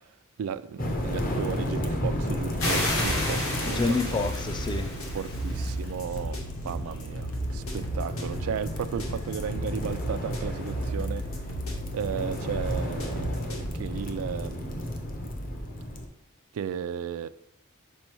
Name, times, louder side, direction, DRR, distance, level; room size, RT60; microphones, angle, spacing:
voice 1, 0.4-3.8 4.0-4.1 5.1-11.2 11.9-14.9 16.5-17.3, right 8 dB, 90° right, 0.3 m, -35 dB
sound 1, 0.8-16.0, equal, 45° left, 0.9 m, -33 dB
sound 2, 2.6-5.9, left 2 dB, 70° left, 2.1 m, -32 dB
sound 3, 3.0-13.7, right 1 dB, 90° left, 1.4 m, -36 dB
voice 2, 3.6-4.9, left 3 dB, 20° left, 0.4 m, -28 dB
5.4 x 5.3 x 4.5 m
head